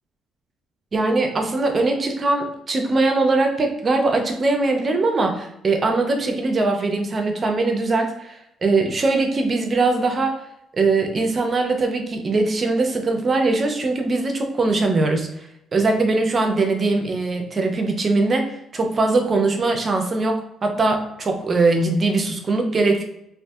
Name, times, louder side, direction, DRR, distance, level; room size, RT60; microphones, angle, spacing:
voice 1, 0.9-10.4 10.7-15.3 15.7-23.0, right 3 dB, 35° right, 4 dB, 0.4 m, -21 dB
2.5 x 2.3 x 2.3 m, 0.81 s
cardioid pair, 115°, 0 cm